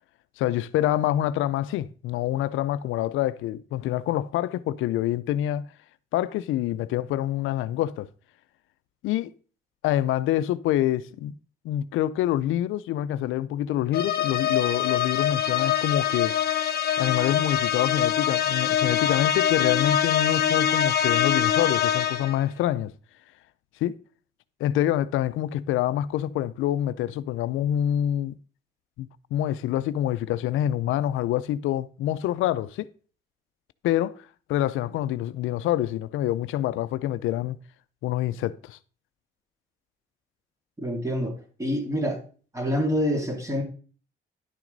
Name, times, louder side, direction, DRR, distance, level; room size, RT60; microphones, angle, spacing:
voice 1, 0.4-5.7 6.1-8.1 9.0-9.3 9.8-11.3 11.6-16.4 17.0-22.9 23.8-24.0 24.6-28.3 29.0-32.9 33.8-37.6 38.0-38.8, left 12 dB, 85° left, 0.5 m, -26 dB
sound 1, 13.9-22.4, left 9 dB, 50° left, 1.1 m, -24 dB
voice 2, 40.8-41.3 41.6-42.2 42.5-43.6, equal, 15° right, 2.6 m, -26 dB
11.0 x 6.0 x 3.9 m
cardioid pair, 90°, 20 cm